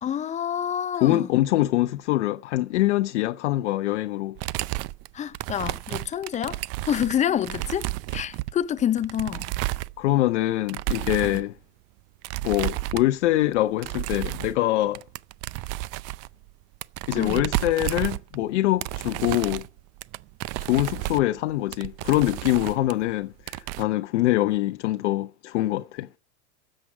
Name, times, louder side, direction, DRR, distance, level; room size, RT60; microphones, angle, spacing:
voice 1, 0.0-1.2 5.1-6.6 6.9-7.9 8.1-9.4 17.1-17.4, left 10 dB, 20° left, 0.5 m, -27 dB
voice 2, 1.0-4.4 10.0-11.6 12.4-15.0 17.1-19.6 20.6-26.1, left 15 dB, 80° left, 0.7 m, -24 dB
sound 1, 4.4-10.3 10.7-11.4 12.2-13.3 13.5-14.7 15.0-18.5 18.8-23.1 23.4-23.8, right 18 dB, 45° right, 0.6 m, -32 dB
13.0 x 7.7 x 4.7 m
supercardioid pair, 115°, 35 cm